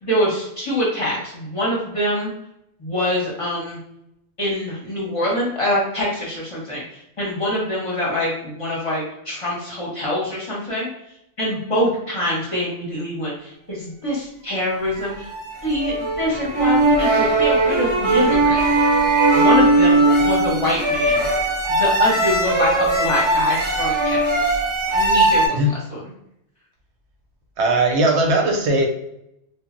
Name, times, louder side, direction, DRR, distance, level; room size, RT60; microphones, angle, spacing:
voice 1, 0.0-2.3 2.8-3.8 4.4-6.8 7.2-10.9 11.4-15.3 15.6-18.6 19.3-21.3 21.7-24.6 24.9-25.6 25.9-26.0, left 1 dB, 35° left, -5 dB, 0.8 m, -24 dB
sound 1, 15.0-25.5, right 2 dB, 40° right, 0.5 m, -18 dB
voice 2, 27.6-28.9, right 1 dB, 85° right, 2 dB, 0.9 m, -18 dB
2.0 x 2.0 x 3.6 m, 0.80 s
omnidirectional pair, 1.1 m